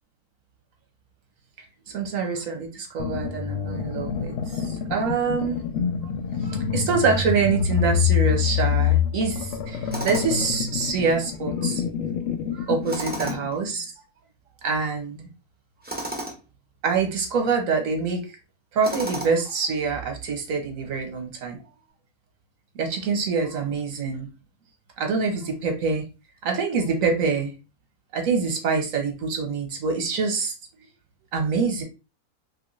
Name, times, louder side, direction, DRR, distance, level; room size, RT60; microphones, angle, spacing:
voice 1, 1.9-5.6 6.4-11.8 12.5-13.9 14.6-15.3 16.1-16.2 16.8-18.2 18.7-21.6 22.7-24.3 25.0-26.0 26.4-27.5 28.1-30.5 31.3-31.8, right 5 dB, 65° right, 3 dB, 1.2 m, -25 dB
sound 1, 3.0-13.5, left 8 dB, 70° left, 0.7 m, -26 dB
Tools, 9.9-10.5 12.8-13.6 15.8-16.4 18.8-19.5, right 1 dB, 10° right, 0.5 m, -33 dB
3.1 x 2.9 x 3.0 m, 0.29 s
omnidirectional pair, 1.6 m